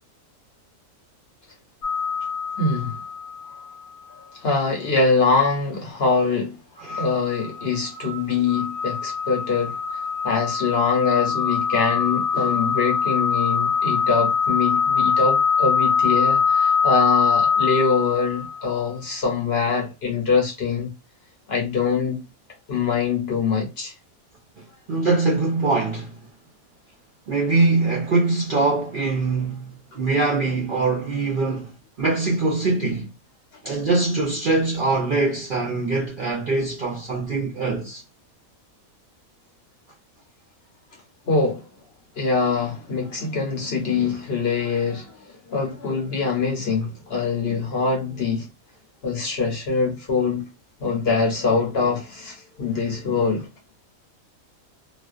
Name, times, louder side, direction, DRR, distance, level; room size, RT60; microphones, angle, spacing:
sound 1, 1.8-3.7 4.1-4.2 6.9-18.7, left 6 dB, 75° left, 1.1 m, -23 dB
voice 1, 2.6-3.0 4.3-6.6 7.0-9.8 10.2-20.9 21.5-22.2 22.7-23.9 41.3-41.7 42.2-48.5 49.0-50.4 50.8-53.5, left 4 dB, 55° left, 0.9 m, -23 dB
voice 2, 24.9-26.2 27.3-31.7 32.0-33.1 33.6-38.0, right 3 dB, 60° right, 0.5 m, -23 dB
2.4 x 2.3 x 2.3 m
omnidirectional pair, 1.5 m